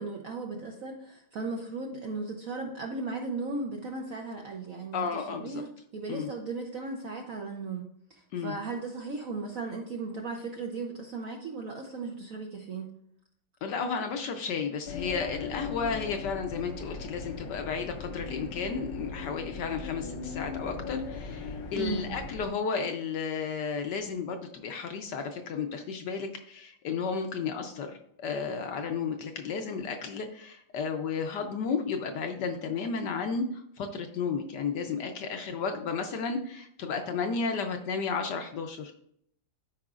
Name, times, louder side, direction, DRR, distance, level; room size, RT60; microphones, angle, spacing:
voice 1, 0.0-12.9 21.8-22.1, right 3 dB, 65° right, 2 dB, 0.8 m, -36 dB
voice 2, 4.9-5.6 6.1-6.3 8.3-8.6 13.6-38.9, left 5 dB, 70° left, 5 dB, 1.1 m, -33 dB
sound 1, 14.9-22.5, left 4 dB, 90° left, 1.7 m, -39 dB
12.5 x 4.8 x 2.4 m, 0.70 s
omnidirectional pair, 2.2 m